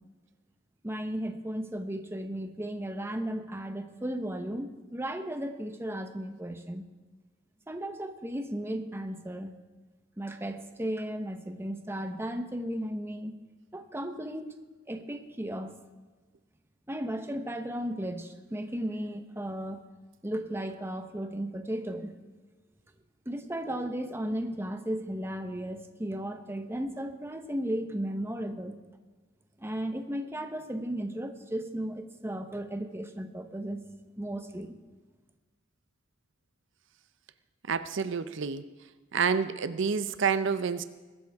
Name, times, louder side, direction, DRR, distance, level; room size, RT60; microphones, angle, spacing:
voice 1, 0.8-6.8 7.7-9.5 10.2-13.4 13.7-14.6 14.9-15.7 16.9-19.8 20.2-22.1 23.3-28.7 29.6-33.8 34.2-34.8, right 1 dB, 15° right, 6 dB, 1.0 m, -35 dB
voice 2, 37.7-38.6 39.1-40.8, right 6 dB, 70° right, 12 dB, 0.6 m, -28 dB
22.0 x 12.5 x 3.6 m, 1.3 s
head